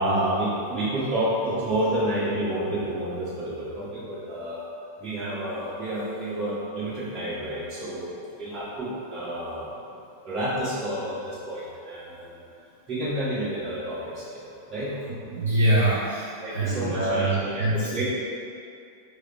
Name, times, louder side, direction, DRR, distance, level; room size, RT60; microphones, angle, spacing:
voice 1, 0.0-4.6 5.0-8.1 8.4-9.8 10.2-12.4 12.9-15.0 16.4-18.0, right 1 dB, 30° right, -9 dB, 1.5 m, -29 dB
voice 2, 15.2-18.0, right 1 dB, 70° right, -9 dB, 0.7 m, -25 dB
5.0 x 2.1 x 3.9 m, 2.4 s
figure-of-eight pair, 90°, 0 cm